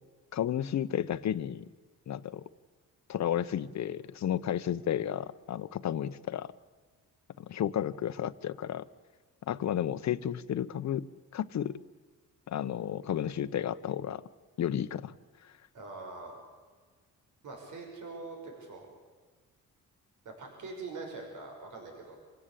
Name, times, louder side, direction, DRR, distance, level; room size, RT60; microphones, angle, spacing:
voice 1, 0.3-1.6 2.1-2.4 3.1-6.5 7.4-8.9 9.5-11.1 11.3-11.8 12.5-14.2 14.6-15.1, left 10 dB, 55° left, 14 dB, 1.0 m, -32 dB
voice 2, 15.7-16.4 17.4-18.9 20.2-22.2, right 3 dB, 65° right, 1 dB, 6.0 m, -43 dB
27.5 x 16.5 x 8.4 m, 1.5 s
cardioid pair, 115°, 32 cm